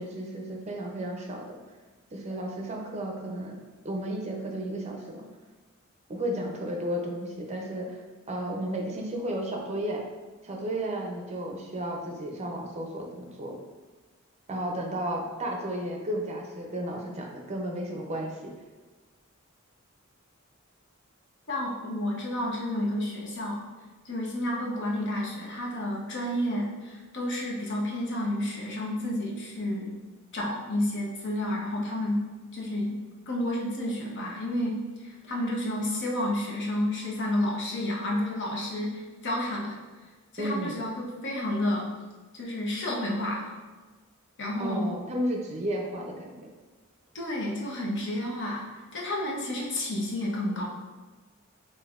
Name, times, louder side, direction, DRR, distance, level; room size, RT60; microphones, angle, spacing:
voice 1, 0.0-1.4 2.1-3.6 3.8-5.2 6.1-8.0 8.3-10.0 10.4-13.6 14.5-18.5 40.4-40.7 44.6-46.5, right 1 dB, 30° right, 1 dB, 0.5 m, -33 dB
voice 2, 21.5-23.6 24.0-29.9 30.3-32.2 32.5-33.0 33.3-39.8 40.3-41.9 42.3-43.5 44.4-44.9 47.1-48.7 48.9-50.6, left 1 dB, 60° left, -2 dB, 0.8 m, -30 dB
5.3 x 2.6 x 2.4 m, 1.3 s
head